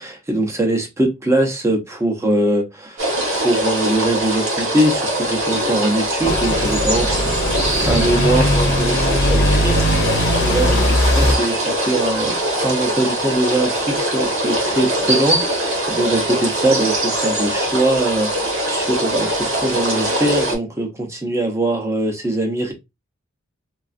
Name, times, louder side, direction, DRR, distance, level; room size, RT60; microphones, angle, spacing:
voice 1, 0.0-3.1 3.3-22.7, right 1 dB, 15° right, 0.6 m, -22 dB
sound 1, 3.0-20.5, right 1 dB, 80° right, 1.2 m, -22 dB
sound 2, 6.2-11.3, left 1 dB, 55° left, 0.6 m, -19 dB
3.3 x 2.3 x 2.4 m
head